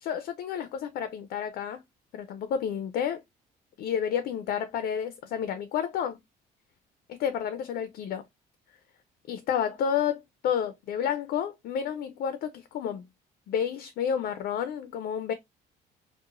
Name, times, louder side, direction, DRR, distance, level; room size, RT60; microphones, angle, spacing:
voice 1, 0.0-1.8 2.1-3.2 3.8-6.2 7.1-8.2 9.3-13.1 13.5-15.3, left 8 dB, 65° left, 0.4 m, -30 dB
2.9 x 2.1 x 2.4 m
cardioid pair, 110°, 17 cm